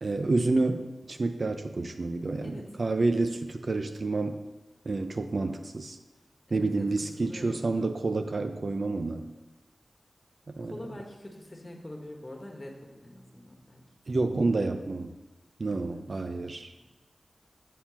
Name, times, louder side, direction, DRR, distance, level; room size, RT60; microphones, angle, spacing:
voice 1, 0.0-4.4 4.8-6.0 6.5-9.3 10.5-10.7 14.1-15.1 15.6-16.7, right 3 dB, 55° right, 7 dB, 0.5 m, -29 dB
voice 2, 6.5-6.9 7.2-7.9 10.6-13.8 14.5-14.6 15.7-16.9, left 1 dB, 30° left, 1 dB, 1.4 m, -45 dB
7.3 x 4.5 x 5.8 m, 1.1 s
wide cardioid pair, 75°, 0 cm